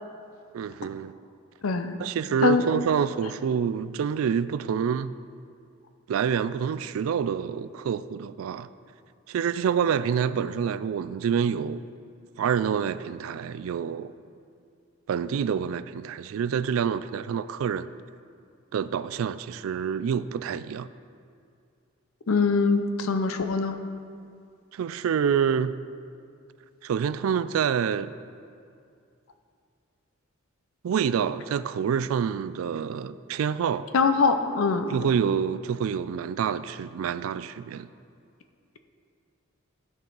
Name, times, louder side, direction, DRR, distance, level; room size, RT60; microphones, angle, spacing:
voice 1, 0.5-1.1 2.0-5.1 6.1-8.7 9.3-11.8 12.4-14.1 15.1-17.9 18.7-20.9 24.7-25.7 26.8-28.1 30.8-33.9 34.9-37.9, right 7 dB, 80° right, 0.3 m, -27 dB
voice 2, 1.6-2.0 2.4-2.6 22.3-23.8 33.9-34.9, left 4 dB, 90° left, 0.6 m, -23 dB
14.5 x 5.4 x 3.9 m
head